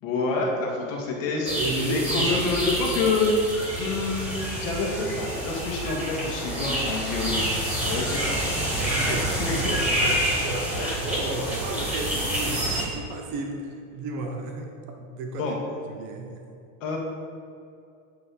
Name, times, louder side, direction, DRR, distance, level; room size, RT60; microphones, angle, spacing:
voice 1, 0.0-3.3 3.8-8.4 9.0-9.5 10.8-11.0 15.4-15.5 16.8-17.0, left 3 dB, 75° left, -2 dB, 2.0 m, -28 dB
sound 1, 1.4-12.8, right 1 dB, 5° right, 1.2 m, -28 dB
voice 2, 1.4-2.6 3.6-3.7 7.9-14.7 15.0-16.4, right 3 dB, 30° right, 2 dB, 0.8 m, -33 dB
9.8 x 3.3 x 6.3 m, 2.5 s
supercardioid pair, 180°, 40 cm